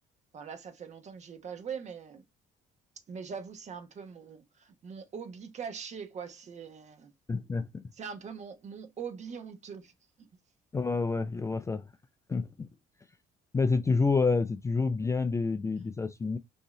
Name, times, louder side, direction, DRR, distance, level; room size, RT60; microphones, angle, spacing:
voice 1, 0.3-2.2 3.1-7.1 7.9-10.3, right 6 dB, 45° right, 1.1 m, -42 dB
voice 2, 7.3-7.8 10.7-11.9 12.3-12.7 13.5-16.4, left 4 dB, 15° left, 0.3 m, -28 dB
5.3 x 2.8 x 3.0 m
cardioid pair, 110°, 17 cm